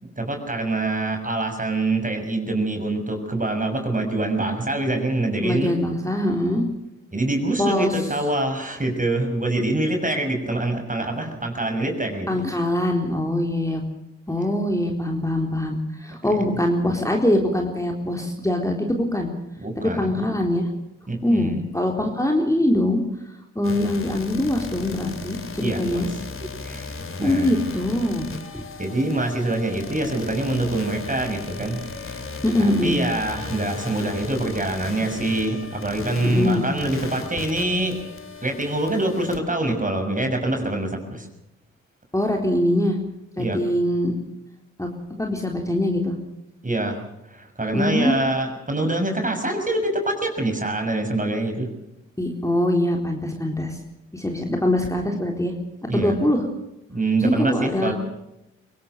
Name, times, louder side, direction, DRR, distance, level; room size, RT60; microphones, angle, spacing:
voice 1, 0.0-5.7 7.1-12.4 16.3-16.4 19.6-20.1 21.1-21.6 25.6-26.2 26.6-27.5 28.8-32.2 32.6-38.0 38.4-41.3 43.4-43.6 46.6-47.0 47.3-51.7 55.9-56.1 56.9-57.9, right 2 dB, 25° right, 4 dB, 6.5 m, -25 dB
voice 2, 5.4-6.7 7.6-7.9 12.3-13.8 14.3-19.3 20.0-20.6 21.2-23.0 23.6-26.1 27.2-28.3 32.4-33.0 36.2-36.7 42.1-43.0 43.4-44.1 44.8-44.9 45.2-46.1 47.7-48.2 52.2-53.8 54.1-55.5 55.9-56.4 57.2-57.9, left 1 dB, 10° left, 2 dB, 4.0 m, -23 dB
sound 1, 23.6-39.4, left 4 dB, 45° left, 2.9 m, -36 dB
23.0 x 18.0 x 6.8 m, 0.88 s
supercardioid pair, 40°, 29 cm